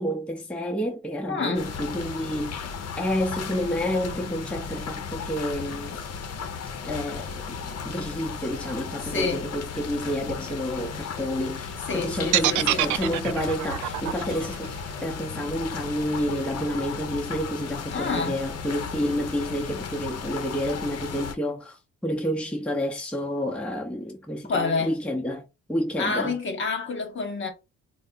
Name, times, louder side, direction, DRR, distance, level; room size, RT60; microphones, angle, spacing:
voice 1, 0.0-6.0 6.8-7.6 7.8-26.4, equal, 5° left, 0.7 m, -29 dB
voice 2, 1.3-1.7 9.0-9.5 11.9-12.9 17.9-18.4 24.4-25.0 26.0-27.5, left 4 dB, 40° left, 1.1 m, -28 dB
sound 1, 1.5-21.3, left 6 dB, 55° left, 0.7 m, -35 dB
sound 2, 12.3-16.4, right 13 dB, 75° right, 0.5 m, -26 dB
3.4 x 2.1 x 3.9 m
cardioid pair, 90°, 30 cm